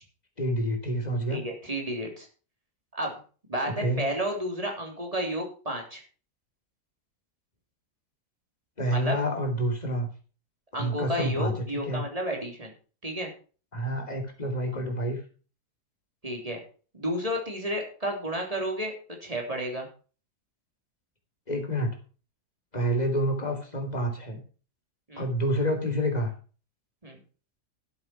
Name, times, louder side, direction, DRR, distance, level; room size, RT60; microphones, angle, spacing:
voice 1, 0.4-1.4 3.6-4.0 8.8-10.1 10.7-12.0 13.7-15.2 21.5-21.9 22.7-24.4 25.2-26.3, equal, 25° left, 4 dB, 3.1 m, -28 dB
voice 2, 1.3-2.3 2.9-3.1 3.5-6.0 8.9-9.2 10.7-12.7 13.0-13.3 16.2-16.6 16.9-18.9 19.2-19.9 25.1-25.2 27.0-27.2, equal, 20° right, 1 dB, 3.5 m, -31 dB
12.5 x 7.8 x 5.9 m, 0.38 s
omnidirectional pair, 1.7 m